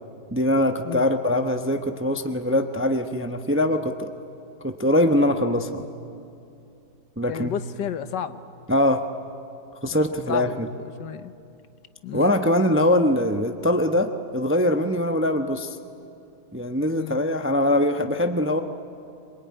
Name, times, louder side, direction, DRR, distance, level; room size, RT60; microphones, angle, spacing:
voice 1, 0.3-4.1 4.6-5.8 7.2-7.6 8.7-9.0 9.8-10.7 12.1-15.8 16.5-18.6, left 1 dB, 10° right, 6 dB, 0.6 m, -22 dB
voice 2, 7.3-8.4 9.9-11.3 12.0-12.3 17.0-17.2, left 8 dB, 80° left, 11 dB, 1.6 m, -32 dB
25.0 x 22.5 x 9.5 m, 2.6 s
omnidirectional pair, 1.8 m